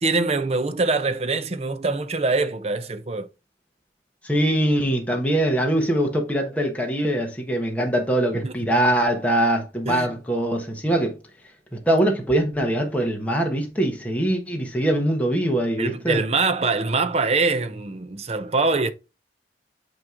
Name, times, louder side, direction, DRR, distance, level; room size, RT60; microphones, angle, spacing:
voice 1, 0.0-3.3 8.4-8.5 9.8-10.2 15.8-18.9, right 3 dB, 35° right, 0.6 m, -24 dB
voice 2, 4.2-11.2 11.9-16.2, right 1 dB, 10° left, 1.2 m, -22 dB
8.8 x 3.0 x 3.8 m
head